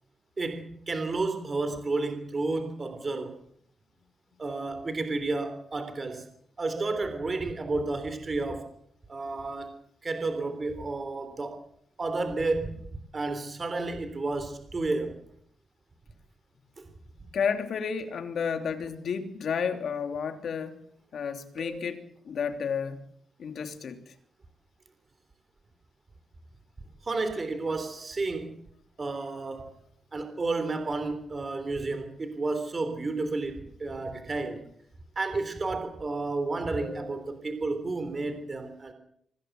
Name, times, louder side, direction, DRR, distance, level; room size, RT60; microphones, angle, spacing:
voice 1, 0.4-3.4 4.4-6.2 6.6-8.7 9.1-9.7 10.0-11.6 12.0-12.8 13.1-15.2 21.6-21.9 27.0-28.5 29.0-29.7 30.1-34.6 35.1-38.9, right 3 dB, 25° right, 3.4 m, -31 dB
voice 2, 17.3-20.8 21.1-23.0 23.4-24.1, left 6 dB, 55° left, 3.0 m, -31 dB
25.5 x 19.0 x 8.0 m
wide cardioid pair, 160°, 0 cm